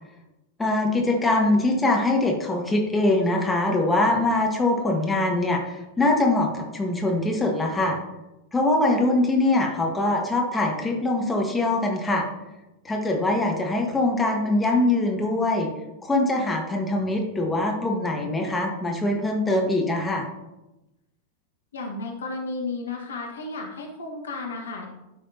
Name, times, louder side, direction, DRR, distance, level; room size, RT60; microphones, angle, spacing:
voice 1, 0.6-8.0 8.5-12.3 12.8-15.7 16.0-20.3, left 2 dB, 10° left, 0 dB, 1.4 m, -23 dB
voice 2, 21.7-24.9, left 3 dB, 70° left, 1 dB, 1.5 m, -33 dB
12.0 x 5.8 x 2.8 m, 0.99 s
figure-of-eight pair, 90°, 0 cm